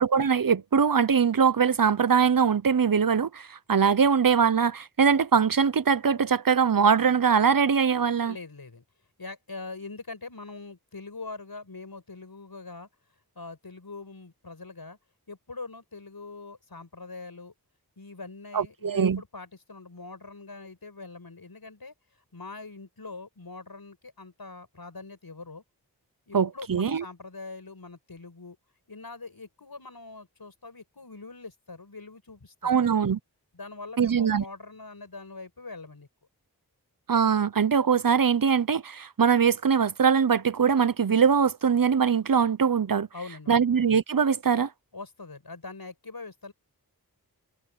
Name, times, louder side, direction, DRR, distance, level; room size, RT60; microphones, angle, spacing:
voice 1, 0.0-8.3 18.5-19.2 26.3-27.0 32.6-33.2 34.0-34.4 37.1-43.1 43.5-44.7, right 6 dB, 60° right, 0.9 m, -22 dB
voice 2, 8.2-8.8 9.2-12.9 13.4-15.0 15.3-17.5 18.0-21.9 22.3-25.6 26.3-28.6 28.9-32.9 33.5-36.1 43.1-43.6 44.9-46.5, left 3 dB, 70° left, 5.9 m, -43 dB
wide cardioid pair, 45°, 38 cm